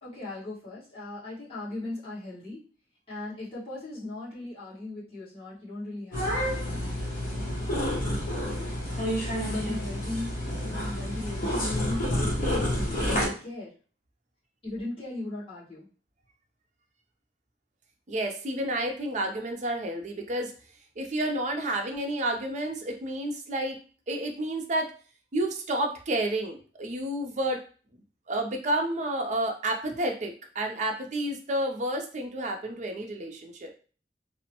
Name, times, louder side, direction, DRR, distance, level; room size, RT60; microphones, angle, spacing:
voice 1, 0.0-2.7 3.1-8.8 9.4-10.4 10.7-13.7 14.6-15.9, left 2 dB, 35° left, -9 dB, 1.5 m, -38 dB
sound 1, 6.1-13.3, equal, 50° left, 1.0 m, -29 dB
voice 2, 18.1-20.5 21.0-23.8 24.1-24.9 25.3-27.6 28.3-33.7, right 1 dB, 45° right, 3 dB, 0.5 m, -30 dB
2.9 x 2.1 x 2.8 m, 0.39 s
head